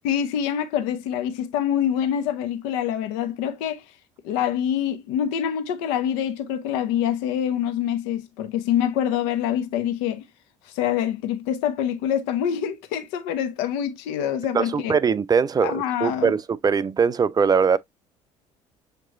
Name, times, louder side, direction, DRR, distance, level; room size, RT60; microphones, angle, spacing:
voice 1, 0.0-3.8 4.2-10.2 10.7-15.0 15.6-16.3, left 9 dB, 75° left, 0.7 m, -25 dB
voice 2, 14.5-17.8, right 6 dB, 25° right, 0.5 m, -21 dB
6.5 x 3.0 x 2.4 m
hypercardioid pair, 65°, 15 cm